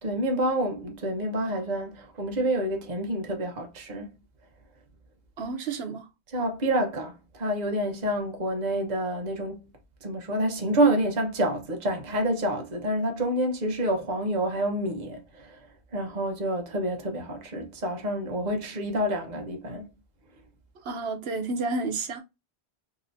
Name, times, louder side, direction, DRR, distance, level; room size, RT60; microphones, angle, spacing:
voice 1, 0.0-4.1 6.3-9.7 10.0-15.6 15.9-19.9, right 1 dB, 45° right, 0.9 m, -28 dB
voice 2, 5.4-6.1 20.8-22.2, right 3 dB, 75° right, 1.0 m, -30 dB
3.7 x 2.9 x 2.6 m
omnidirectional pair, 1.1 m